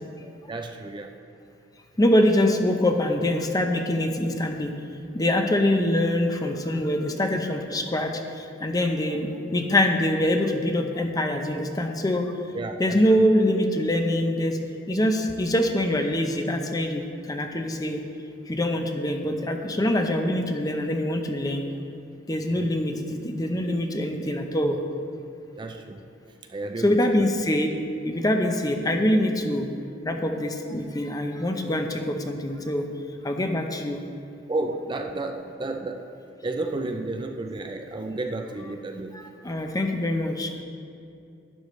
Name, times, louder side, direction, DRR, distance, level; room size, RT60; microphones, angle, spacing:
voice 1, 0.2-1.1 12.5-13.0 22.5-22.7 25.6-26.0 26.5-27.2 34.5-36.1 36.4-39.2, right 2 dB, 25° right, 4 dB, 0.4 m, -32 dB
voice 2, 2.0-4.7 5.1-12.3 12.8-14.6 14.9-18.0 18.5-21.7 22.3-24.8 26.8-27.7 28.1-29.7 30.0-32.9 33.2-34.0 39.1-40.5, left 1 dB, 20° left, 4 dB, 0.7 m, -24 dB
11.5 x 9.7 x 3.2 m, 2.6 s
head